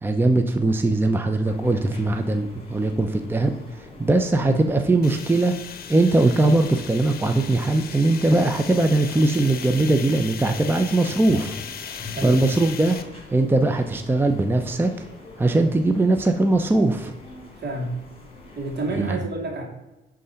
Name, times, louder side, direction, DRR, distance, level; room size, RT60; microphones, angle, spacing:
voice 1, 0.0-5.5 5.9-11.6 12.2-13.0 13.3-14.9 15.4-17.1 18.9-19.2, right 2 dB, 10° right, 6 dB, 0.6 m, -20 dB
sound 1, 1.4-19.1, left 3 dB, 30° left, 2.9 m, -43 dB
sound 2, 5.0-13.0, left 7 dB, 50° left, 0.9 m, -37 dB
voice 2, 17.6-17.9 18.6-19.6, right 2 dB, 60° right, 0 dB, 2.4 m, -29 dB
10.5 x 3.8 x 5.6 m, 1.0 s
cardioid pair, 90°, 20 cm